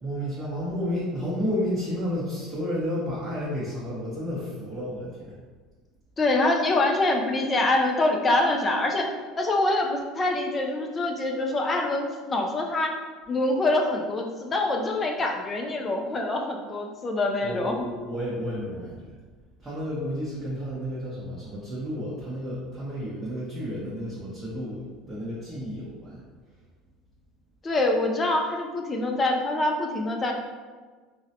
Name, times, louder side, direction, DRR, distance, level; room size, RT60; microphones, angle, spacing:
voice 1, 0.0-5.3 17.4-19.1 19.6-26.2, equal, 20° right, -8 dB, 0.7 m, -31 dB
voice 2, 6.2-12.9 13.3-17.9 27.6-30.3, left 2 dB, 20° left, 2 dB, 0.3 m, -25 dB
3.7 x 2.1 x 2.7 m, 1.4 s
cardioid pair, 135°, 0 cm